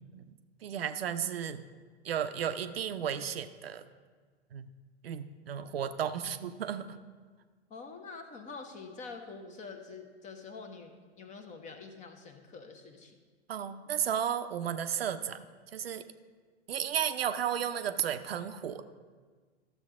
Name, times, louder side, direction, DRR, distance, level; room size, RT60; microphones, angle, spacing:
voice 1, 0.6-1.6 2.0-3.8 4.5-4.7 5.0-7.0 13.5-15.4 15.7-16.0 16.7-18.8, right 9 dB, 60° right, 10 dB, 0.6 m, -33 dB
voice 2, 7.7-13.2, left 4 dB, 20° left, 6 dB, 1.0 m, -46 dB
13.5 x 7.0 x 3.7 m, 1.5 s
figure-of-eight pair, 100°, 33 cm